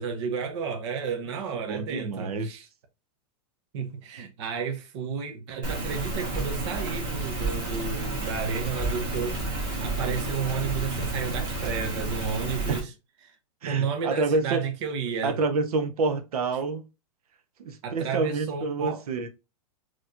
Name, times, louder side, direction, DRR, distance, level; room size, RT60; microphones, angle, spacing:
voice 1, 0.0-2.7 3.7-12.9 13.2-13.3 13.6-15.4 17.8-19.0, right 6 dB, 50° right, 0.8 m, -32 dB
voice 2, 1.7-2.6 12.7-12.8 13.6-14.6 15.2-16.8 17.6-19.3, right 3 dB, 85° right, 0.9 m, -28 dB
Rain, 5.6-12.8, right 2 dB, 25° right, 1.5 m, -31 dB
4.3 x 3.1 x 2.5 m
supercardioid pair, 165°, 19 cm